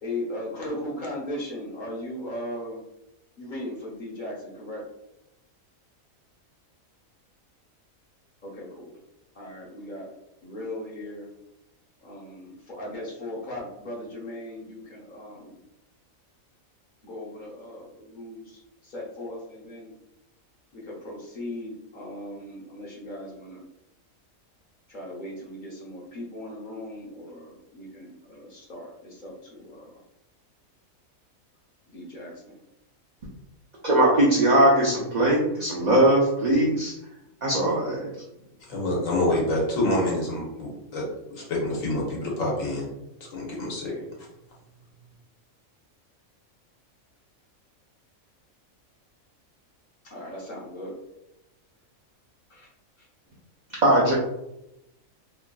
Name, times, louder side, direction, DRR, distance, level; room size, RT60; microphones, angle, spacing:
voice 1, 0.0-2.8 3.4-4.8 8.4-8.9 9.3-10.1 10.4-11.3 12.0-15.6 17.0-19.9 20.7-23.6 24.9-30.0 31.9-32.6 50.0-51.0 52.5-52.7 53.0-53.1, left 1 dB, 45° left, -3 dB, 0.8 m, -38 dB
voice 2, 33.8-36.9 37.4-38.1 53.8-54.1, right 1 dB, 90° right, -5 dB, 0.3 m, -20 dB
voice 3, 38.7-42.9 43.3-44.2, left 1 dB, 70° left, -4 dB, 1.3 m, -27 dB
3.1 x 2.5 x 2.2 m, 0.88 s
omnidirectional pair, 1.4 m